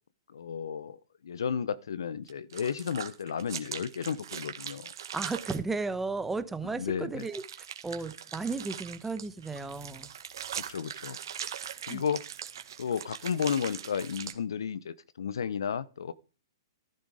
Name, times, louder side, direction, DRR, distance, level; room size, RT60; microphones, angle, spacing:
voice 1, 0.3-1.0 1.2-4.9 6.8-7.2 10.5-11.2 11.9-12.2 12.8-16.1, left 7 dB, 70° left, 0.9 m, -33 dB
sound 1, 2.3-5.6 7.2-14.3, right 9 dB, 65° right, 1.9 m, -41 dB
voice 2, 5.1-10.1 11.9-12.0, right 3 dB, 10° right, 1.1 m, -34 dB
13.5 x 11.5 x 5.0 m
hypercardioid pair, 125°, 2 cm